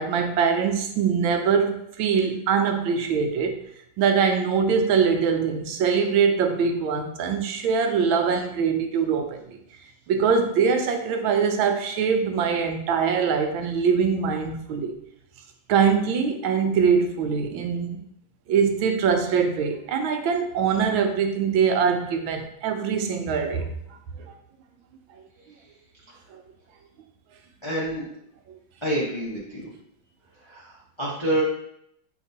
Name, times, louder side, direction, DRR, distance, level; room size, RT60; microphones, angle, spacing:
voice 1, 0.0-3.6 4.0-9.6 10.1-14.9 15.7-18.0 18.5-23.7 24.2-24.3 26.3-26.4, right 6 dB, 80° right, 5 dB, 1.3 m, -23 dB
voice 2, 27.6-28.1 28.8-29.7 30.4-31.4, right 1 dB, 45° left, -7 dB, 0.3 m, -28 dB
6.7 x 2.9 x 2.7 m, 0.74 s
omnidirectional pair, 2.2 m